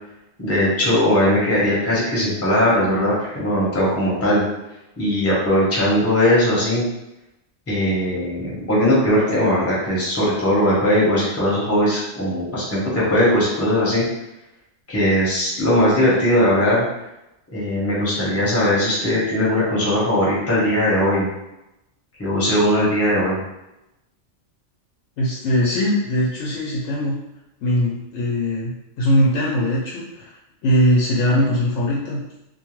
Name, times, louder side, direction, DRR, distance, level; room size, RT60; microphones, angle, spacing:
voice 1, 0.4-4.4 5.0-6.8 7.7-14.0 14.9-16.8 17.5-21.3 22.2-23.4, left 1 dB, 15° left, -7 dB, 0.8 m, -19 dB
voice 2, 25.2-27.2 27.6-28.7 29.0-30.4 30.6-32.2, equal, 80° left, -4 dB, 0.9 m, -20 dB
2.5 x 2.2 x 3.0 m, 0.91 s
omnidirectional pair, 1.2 m